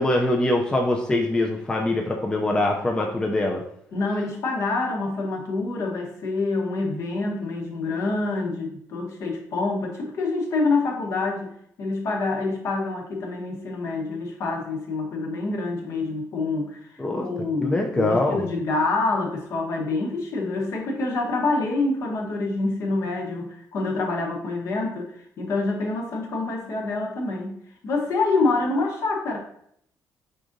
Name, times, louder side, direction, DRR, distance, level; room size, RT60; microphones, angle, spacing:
voice 1, 0.0-3.6 17.0-17.3 17.6-18.4, left 1 dB, 15° left, 0 dB, 0.4 m, -23 dB
voice 2, 3.9-11.5 11.8-16.8 17.2-27.6 27.8-29.4, left 3 dB, 55° left, 0 dB, 1.0 m, -26 dB
4.8 x 3.8 x 2.6 m, 0.70 s
cardioid pair, 155°, 6 cm